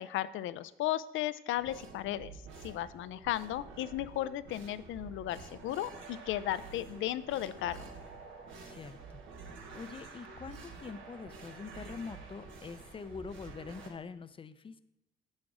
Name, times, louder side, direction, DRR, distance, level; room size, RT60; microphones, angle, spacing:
voice 1, 0.0-2.3 2.6-7.8, left 13 dB, 80° left, 15 dB, 0.4 m, -35 dB
sound 1, 1.6-13.9, right 4 dB, 85° right, 1.4 m, -49 dB
voice 2, 8.6-14.8, left 5 dB, 25° left, 14 dB, 0.5 m, -45 dB
7.5 x 6.3 x 4.8 m, 0.86 s
cardioid pair, 90°, 20 cm